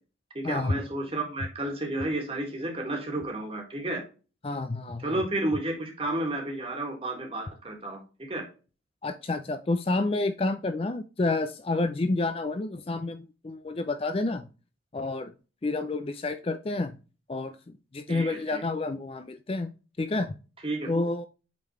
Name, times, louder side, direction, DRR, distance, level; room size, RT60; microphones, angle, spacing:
voice 1, 0.3-4.0 5.0-8.4 18.1-18.6 20.6-20.9, right 1 dB, 30° right, 2 dB, 1.8 m, -32 dB
voice 2, 4.4-5.2 9.0-14.4 14.9-15.3 15.6-16.9 17.3-17.6 17.9-19.7 20.0-20.4 20.9-21.3, left 2 dB, 30° left, 9 dB, 0.4 m, -29 dB
8.5 x 3.9 x 3.0 m, 0.33 s
head